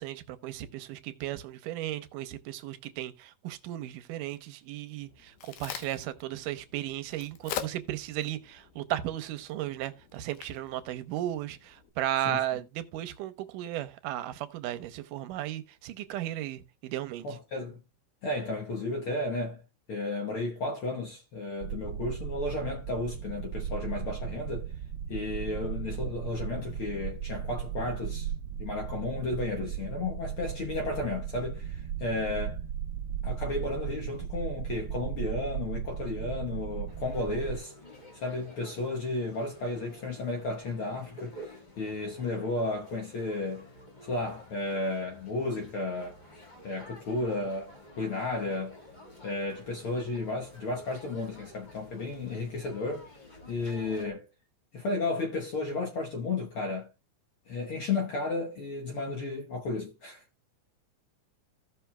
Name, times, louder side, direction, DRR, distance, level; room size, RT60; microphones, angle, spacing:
voice 1, 0.0-17.2, right 13 dB, 90° right, 2.3 m, -35 dB
Crack, 5.0-11.9, left 9 dB, 75° left, 2.4 m, -44 dB
voice 2, 17.2-17.8 18.2-19.6 19.9-24.7 25.1-28.3 28.6-32.6 33.2-37.7 38.1-41.4 41.8-43.7 44.0-46.2 46.6-48.8 49.2-53.1 53.5-54.2 54.7-56.9 57.5-60.2, left 2 dB, 60° left, 1.4 m, -33 dB
sound 1, 21.6-37.6, right 9 dB, 65° right, 1.4 m, -36 dB
sound 2, 36.9-54.1, equal, 30° left, 0.7 m, -51 dB
16.0 x 5.9 x 2.2 m
omnidirectional pair, 3.7 m